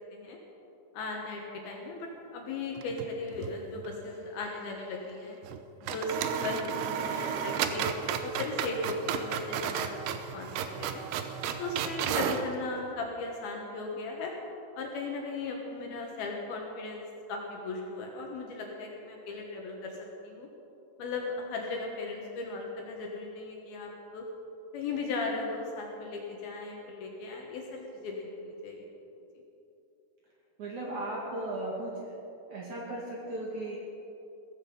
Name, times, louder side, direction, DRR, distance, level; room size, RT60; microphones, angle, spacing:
voice 1, 0.9-5.4 5.9-9.9 10.3-11.0 11.6-14.3 14.8-17.0 17.3-20.5 21.0-24.3 24.7-28.9, left 3 dB, 65° left, 0 dB, 2.8 m, -37 dB
sound 1, 2.8-3.6 3.8-3.9 5.4-5.6 5.9-12.5, right 8 dB, 75° right, 2.4 m, -33 dB
voice 2, 30.6-32.1 32.5-33.8, right 1 dB, 55° right, -3 dB, 2.5 m, -36 dB
17.0 x 14.5 x 5.5 m, 2.9 s
omnidirectional pair, 5.4 m